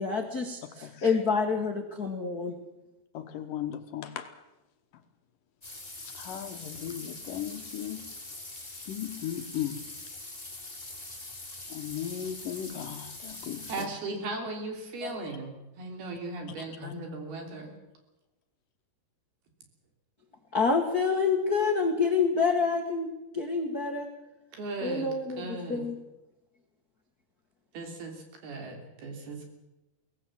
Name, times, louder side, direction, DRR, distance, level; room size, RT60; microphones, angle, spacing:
voice 1, 0.0-2.6 20.5-24.1 24.8-26.0, left 4 dB, 85° left, 4 dB, 0.8 m, -27 dB
voice 2, 3.1-4.3 6.1-8.0 8.8-9.9 11.7-13.9 15.0-15.2 16.8-16.9, left 10 dB, 65° left, 8 dB, 2.5 m, -37 dB
sound 1, 5.6-13.9, left 2 dB, 10° left, 3.3 m, -43 dB
voice 3, 13.7-15.5 15.8-17.7 24.5-25.1 25.4-25.8 27.7-29.5, right 3 dB, 75° right, 4 dB, 5.3 m, -37 dB
23.0 x 18.0 x 7.6 m, 1.0 s
omnidirectional pair, 4.5 m